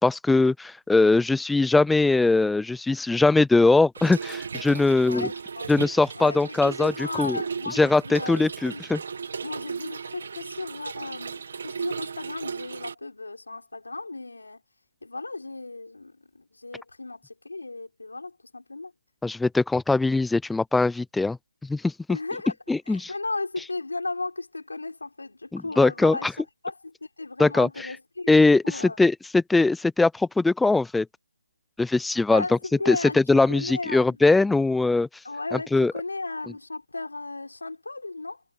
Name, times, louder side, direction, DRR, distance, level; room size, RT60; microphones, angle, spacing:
voice 1, 0.0-5.3 5.7-7.4 7.7-9.0 19.2-21.4 21.7-22.2 22.7-23.1 25.5-26.3 27.4-27.9 28.3-31.1 31.8-32.4 32.9-33.0 33.3-35.1 35.7-35.9, left 3 dB, ahead, 0.4 m, -21 dB
Trickle dribble / Fill (with liquid), 3.9-12.9, right 5 dB, 50° right, 1.5 m, -36 dB
voice 2, 5.1-5.7 6.1-8.8 9.4-14.6 15.0-18.9 22.1-22.5 22.9-26.3 26.6-28.3 28.6-29.0 32.3-34.2 35.2-38.4, left 3 dB, 90° left, 4.9 m, -35 dB
figure-of-eight pair, 165°, 0 cm